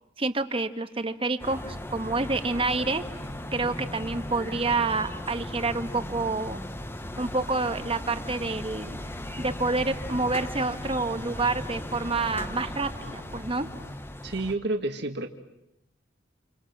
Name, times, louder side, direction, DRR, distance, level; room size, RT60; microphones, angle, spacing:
voice 1, 0.2-3.0 3.5-6.6 7.2-9.0 9.4-13.7, right 3 dB, 30° right, 9 dB, 1.4 m, -28 dB
sound 1, 1.4-14.5, left 1 dB, 10° left, 1.1 m, -37 dB
sound 2, 2.3-13.9, left 1 dB, 55° left, 4.8 m, -47 dB
voice 2, 14.2-15.3, right 2 dB, 60° right, 5 dB, 2.1 m, -29 dB
29.5 x 28.0 x 6.1 m, 0.82 s
head